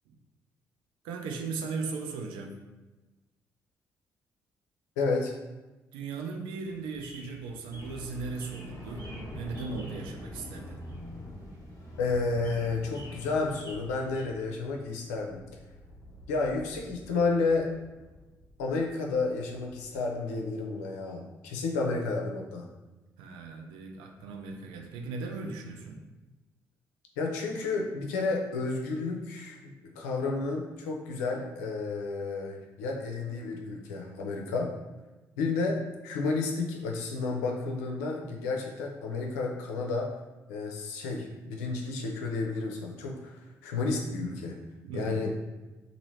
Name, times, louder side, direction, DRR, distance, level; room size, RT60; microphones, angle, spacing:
voice 1, 1.0-2.6 5.9-10.8 23.2-26.0 44.8-45.4, right 4 dB, 75° right, 3 dB, 0.4 m, -37 dB
voice 2, 5.0-5.3 12.0-15.4 16.3-17.7 18.6-22.7 27.2-34.7 35.4-40.2 40.5-44.6 44.9-45.3, left 3 dB, 85° left, 1 dB, 0.4 m, -31 dB
sound 1, 6.6-14.3, equal, 45° right, 1.2 m, -53 dB
sound 2, 7.7-20.2, left 1 dB, 40° left, 0.9 m, -46 dB
2.8 x 2.5 x 3.2 m, 1.1 s
hypercardioid pair, 45°, 9 cm